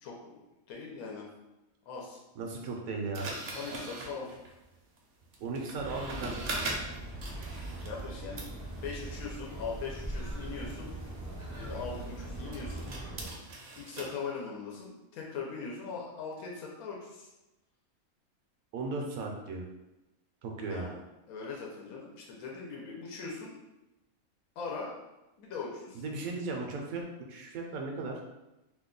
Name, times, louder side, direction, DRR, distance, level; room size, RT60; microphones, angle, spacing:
voice 1, 0.0-1.3 1.9-2.2 3.5-4.3 7.6-8.4 8.8-10.9 11.6-12.9 13.7-17.3 20.7-21.0 21.3-23.6 24.6-24.9 25.4-26.0, left 5 dB, 85° left, -2 dB, 1.1 m, -40 dB
voice 2, 2.4-3.3 5.4-6.6 18.7-19.7 20.4-20.9 25.9-28.2, right 3 dB, 80° right, 1 dB, 1.0 m, -36 dB
sound 1, 3.1-8.1 8.4-14.1, right 2 dB, 60° right, 0.7 m, -42 dB
sound 2, 5.7-13.3, right 1 dB, 25° right, 0.4 m, -41 dB
2.9 x 2.2 x 3.7 m, 0.98 s
omnidirectional pair, 1.5 m